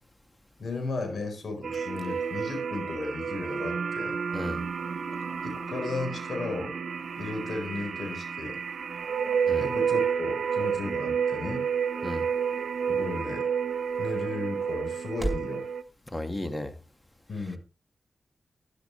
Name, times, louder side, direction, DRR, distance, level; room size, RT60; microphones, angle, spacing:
voice 1, 0.6-4.2 5.4-6.7 7.2-8.6 9.6-11.7 12.9-13.5 14.0-15.7 17.3-17.6, left 3 dB, 70° left, 4.6 m, -35 dB
sound 1, 1.6-15.8, right 7 dB, 80° right, 1.0 m, -30 dB
sound 2, 9.3-15.6, right 1 dB, ahead, 4.9 m, -42 dB
voice 2, 16.1-16.7, left 1 dB, 20° left, 2.2 m, -33 dB
12.5 x 11.0 x 3.4 m
cardioid pair, 45°, 0 cm